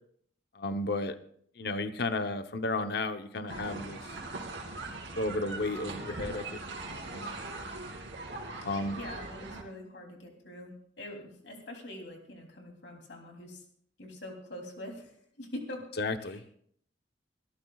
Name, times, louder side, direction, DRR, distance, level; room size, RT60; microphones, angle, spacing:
voice 1, 0.6-1.2 1.6-4.0 5.1-6.6 7.1-7.6 8.6-9.0 16.0-16.5, left 2 dB, 60° left, 9 dB, 0.9 m, -33 dB
sound 1, 3.5-9.6, right 2 dB, 75° right, 2.9 m, -41 dB
voice 2, 9.0-13.6 14.0-15.8 16.2-16.4, left 1 dB, 75° left, 1 dB, 3.1 m, -44 dB
24.5 x 13.0 x 2.4 m, 0.63 s
head